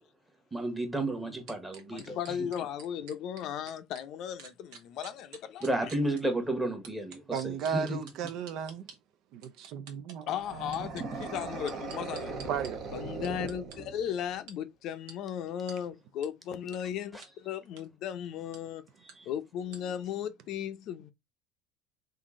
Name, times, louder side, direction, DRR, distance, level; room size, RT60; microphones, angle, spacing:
voice 1, 0.5-2.4 5.6-8.1 17.1-17.2 19.2-19.3, right 1 dB, 10° right, 1.1 m, -32 dB
sound 1, 1.5-4.0 4.4-6.2 6.8-9.0 9.4-10.2 10.7-12.7 13.2-13.8 14.5-14.6 15.1-15.2 15.7-15.8 16.2-16.3 16.7-16.8 17.2-17.3 17.7-17.9 18.5-18.6 19.1-19.2 19.7-19.8, right 6 dB, 80° right, 1.1 m, -48 dB
voice 2, 1.9-5.7 10.3-12.4 12.9-18.8 19.3-21.1, left 9 dB, 50° left, 0.6 m, -36 dB
voice 3, 7.3-8.9 9.3-10.9 12.5-12.8, right 7 dB, 55° right, 0.5 m, -35 dB
sound 2, 10.4-14.3, right 4 dB, 40° right, 0.8 m, -39 dB
3.8 x 2.6 x 3.6 m
cardioid pair, 140°, 0 cm